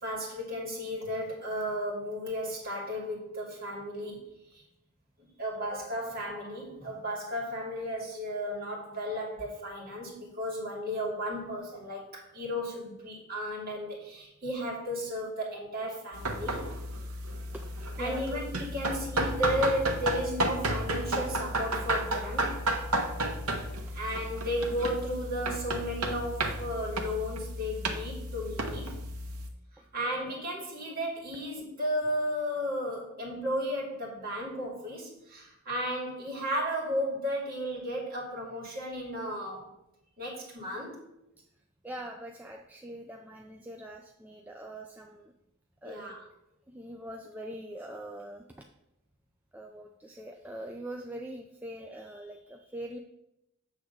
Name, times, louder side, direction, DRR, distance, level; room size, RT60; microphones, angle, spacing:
voice 1, 0.0-4.6 5.2-16.7 18.0-22.6 23.9-29.0 29.9-39.7 40.2-41.0 45.8-46.2, equal, 45° right, -3 dB, 2.3 m, -34 dB
sound 1, 16.1-29.5, right 1 dB, 80° right, 0.9 m, -32 dB
voice 2, 17.5-18.3 29.8-29.9 41.8-45.3 45.8-46.1 46.7-48.4 49.5-53.0, right 1 dB, 5° right, 2 dB, 0.3 m, -43 dB
7.9 x 3.5 x 6.4 m, 0.86 s
head